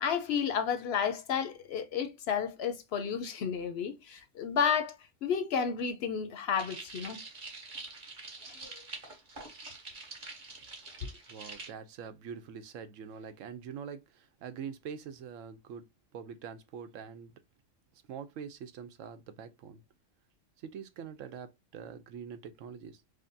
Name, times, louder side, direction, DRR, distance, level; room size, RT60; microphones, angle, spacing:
voice 1, 0.0-7.2 8.5-8.8, left 7 dB, 65° left, 0.7 m, -32 dB
sound 1, 6.5-11.7, right 3 dB, 40° right, 1.2 m, -45 dB
voice 2, 11.3-15.8 16.1-17.3 17.9-19.8 20.6-23.0, right 7 dB, 85° right, 1.0 m, -44 dB
5.1 x 2.1 x 2.6 m
omnidirectional pair, 1.3 m